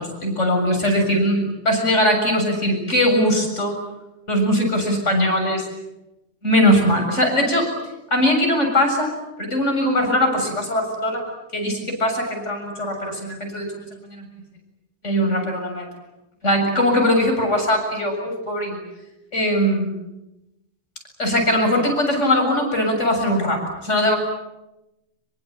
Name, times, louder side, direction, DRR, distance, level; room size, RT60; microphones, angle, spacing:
voice 1, 0.0-3.8 4.3-5.7 6.4-7.7 8.1-9.1 9.4-11.2 11.5-14.3 15.0-15.9 16.4-18.8 19.3-20.0 21.2-24.2, left 1 dB, 90° left, 3 dB, 7.6 m, -20 dB
26.5 x 23.5 x 9.0 m, 0.94 s
omnidirectional pair, 1.2 m